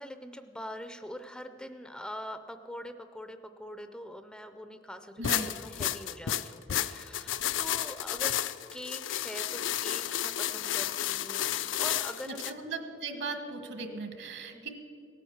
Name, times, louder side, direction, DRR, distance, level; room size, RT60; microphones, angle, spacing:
voice 1, 0.0-8.3 8.7-12.5 14.5-14.7, equal, 5° left, 9 dB, 0.5 m, -43 dB
sound 1, 5.2-12.5, left 11 dB, 70° left, 0.5 m, -32 dB
voice 2, 12.3-14.7, right 3 dB, 65° right, 7 dB, 1.4 m, -38 dB
17.5 x 9.2 x 7.2 m, 2.6 s
head